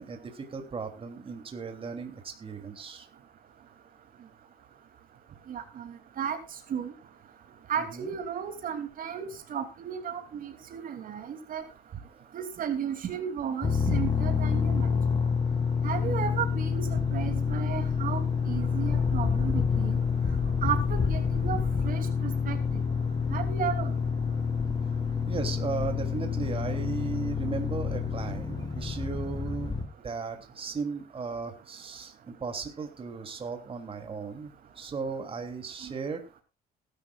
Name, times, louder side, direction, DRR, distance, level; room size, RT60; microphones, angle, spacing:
voice 1, 0.0-3.1 7.9-8.1 16.0-16.4 24.8-24.9 25.2-29.7 30.0-36.4, right 5 dB, 35° right, 6 dB, 3.0 m, -36 dB
voice 2, 5.5-6.4 6.7-6.9 7.7-11.6 12.3-14.9 15.8-20.0 20.6-22.8 23.3-23.9 35.8-35.9, right 8 dB, 55° right, 7 dB, 2.9 m, -34 dB
sound 1, 13.6-29.9, left 6 dB, 25° left, 3.6 m, -28 dB
18.5 x 12.0 x 2.5 m, 0.30 s
cardioid pair, 110°, 17 cm